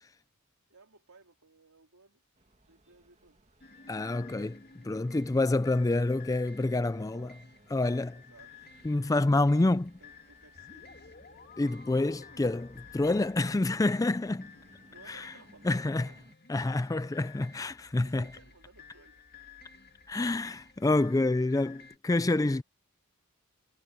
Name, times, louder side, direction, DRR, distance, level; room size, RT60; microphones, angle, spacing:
voice 1, 0.7-2.2 2.6-3.4 6.9-7.4 8.1-8.5 9.0-9.7 10.0-11.1 14.9-16.3 18.0-19.2 19.7-19.9 20.8-21.7, right 3 dB, 80° right, 3.6 m, -59 dB
sound 1, 2.4-16.4, right 1 dB, 30° right, 2.2 m, -63 dB
sound 2, 3.6-22.0, left 5 dB, 45° left, 2.9 m, -54 dB
voice 2, 3.9-7.3 7.7-8.2 8.8-9.9 11.6-14.5 15.1-15.3 15.6-16.1 16.5-18.3 20.1-22.6, left 2 dB, 15° left, 0.3 m, -28 dB
head